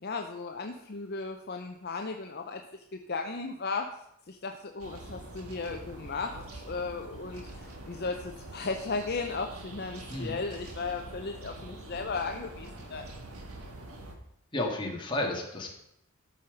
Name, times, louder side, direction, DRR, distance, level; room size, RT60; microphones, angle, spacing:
voice 1, 0.0-3.9 4.3-13.1, left 4 dB, 45° left, 4 dB, 0.6 m, -36 dB
sound 1, 4.8-14.2, right 2 dB, 80° right, 1.6 m, -45 dB
voice 2, 14.5-15.7, left 1 dB, 20° left, -1 dB, 1.8 m, -32 dB
13.5 x 5.6 x 5.1 m, 0.78 s
head